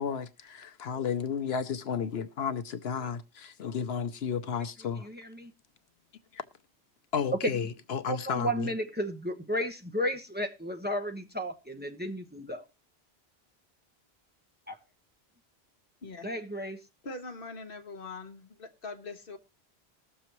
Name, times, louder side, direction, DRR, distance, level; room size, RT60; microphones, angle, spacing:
voice 1, 0.0-5.1 6.3-6.4 7.1-8.7, left 6 dB, 75° left, 1.0 m, -33 dB
voice 2, 5.0-5.5 7.4-7.7 8.1-12.6 14.7-14.8 16.2-16.8, equal, 10° right, 1.0 m, -33 dB
voice 3, 17.0-19.4, left 3 dB, 60° left, 1.3 m, -42 dB
20.5 x 6.9 x 3.0 m
omnidirectional pair, 1.1 m